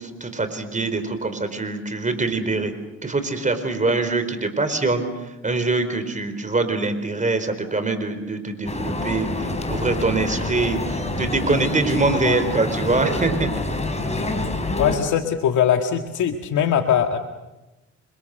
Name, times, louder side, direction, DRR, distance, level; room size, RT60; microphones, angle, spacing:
voice 1, 0.0-2.7 3.0-13.5, right 3 dB, 25° right, 9 dB, 4.5 m, -24 dB
sound 1, 8.7-15.0, left 2 dB, 20° left, 5.4 m, -27 dB
voice 2, 14.8-17.2, left 9 dB, 80° left, 4 dB, 1.9 m, -21 dB
29.5 x 26.5 x 6.8 m, 1.0 s
cardioid pair, 90°, 30 cm